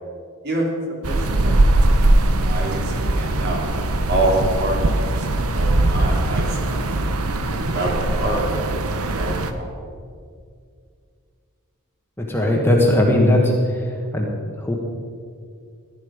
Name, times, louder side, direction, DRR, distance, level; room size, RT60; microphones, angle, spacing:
voice 1, 1.0-1.8 2.4-3.6 4.1-5.2 5.5-6.9 7.5-8.5 9.2-9.7, right 1 dB, 50° right, -2 dB, 3.2 m, -26 dB
sound 1, 1.0-9.5, right 2 dB, 75° right, 0.9 m, -20 dB
voice 2, 12.2-13.8 14.1-14.3 14.6-14.7, left 1 dB, 10° left, -1 dB, 1.5 m, -18 dB
15.5 x 11.5 x 5.2 m, 2.2 s
head